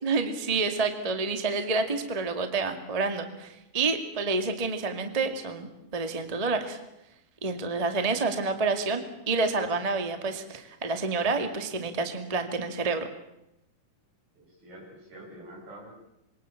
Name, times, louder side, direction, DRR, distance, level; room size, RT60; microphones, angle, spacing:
voice 1, 0.0-6.8 7.4-13.1, right 3 dB, 15° right, 7 dB, 1.5 m, -28 dB
voice 2, 14.3-15.9, right 1 dB, 80° right, -1 dB, 9.7 m, -46 dB
27.0 x 23.0 x 7.2 m, 0.86 s
omnidirectional pair, 4.1 m